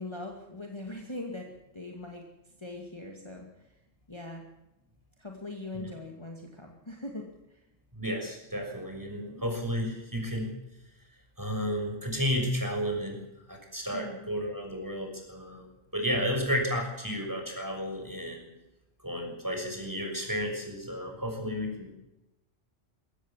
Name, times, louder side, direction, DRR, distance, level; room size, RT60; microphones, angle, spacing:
voice 1, 0.0-2.2 2.6-3.7 4.1-4.5 5.2-7.6 9.1-9.4 13.9-14.3 21.4-21.7, left 2 dB, 20° left, 1 dB, 2.4 m, -41 dB
voice 2, 7.9-10.5 11.4-13.2 13.5-15.7 15.9-18.5 19.0-22.0, equal, 15° right, 2 dB, 6.4 m, -32 dB
22.5 x 17.0 x 7.4 m, 0.93 s
omnidirectional pair, 1.3 m